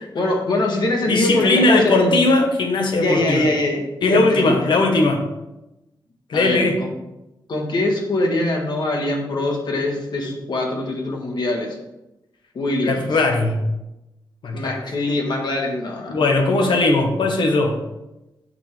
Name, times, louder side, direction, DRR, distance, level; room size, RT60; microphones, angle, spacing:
voice 1, 0.1-2.1 3.0-3.8 4.1-4.7 6.3-6.9 7.5-11.8 12.5-13.1 14.5-16.2, left 2 dB, 60° left, 1 dB, 1.6 m, -23 dB
voice 2, 1.1-3.5 4.0-5.2 6.3-6.8 12.8-13.6 14.4-14.9 16.1-17.8, left 2 dB, 80° left, 3 dB, 1.4 m, -18 dB
8.1 x 6.4 x 3.5 m, 0.95 s
wide cardioid pair, 135°, 8 cm